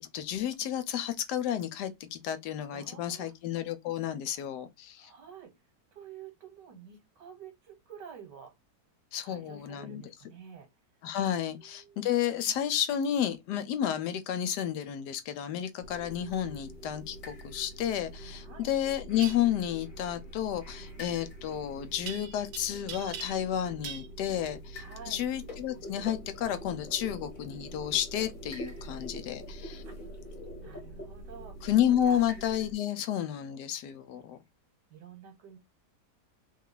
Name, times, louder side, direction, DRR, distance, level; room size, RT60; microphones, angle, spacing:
voice 1, 0.0-5.1 9.1-10.0 11.0-29.8 31.6-34.4, left 10 dB, 80° left, 1.2 m, -31 dB
voice 2, 2.7-3.3 5.0-5.5 5.9-8.5 9.2-10.7 11.4-12.2 18.4-18.7 23.7-23.9 24.8-25.2 28.6-29.2 29.9-30.1 30.6-32.2 32.8-33.0 34.9-35.6, right 7 dB, 90° right, 1.9 m, -50 dB
sound 1, 15.8-32.7, equal, 35° left, 1.0 m, -45 dB
sound 2, 19.1-19.4 22.1-22.6 22.9-23.6 23.8-24.1, right 8 dB, 70° right, 1.0 m, -40 dB
3.4 x 2.3 x 3.7 m
omnidirectional pair, 1.8 m